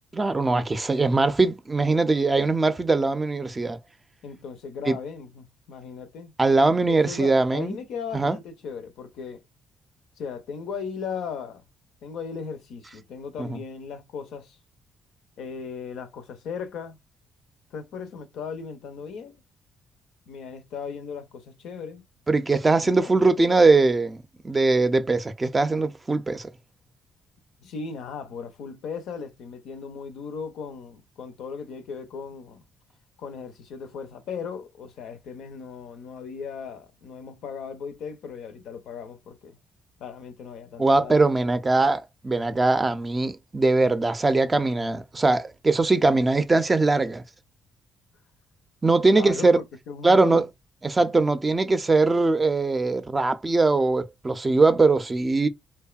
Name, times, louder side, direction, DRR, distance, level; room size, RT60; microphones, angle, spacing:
voice 1, 0.1-3.8 4.9-5.0 6.4-7.8 8.1-8.4 13.4-13.6 22.3-24.2 24.4-26.5 40.8-47.2 48.8-49.6 50.0-50.4 50.8-55.5, right 3 dB, 30° right, 0.4 m, -21 dB
voice 2, 4.2-6.3 6.9-9.4 10.2-11.6 12.0-14.6 15.4-17.0 17.7-19.4 20.3-22.0 22.8-23.6 27.6-32.6 33.2-39.6 40.0-41.2 49.1-50.4, left 6 dB, 70° left, 0.5 m, -37 dB
2.7 x 2.2 x 2.3 m
hypercardioid pair, 50°, 0 cm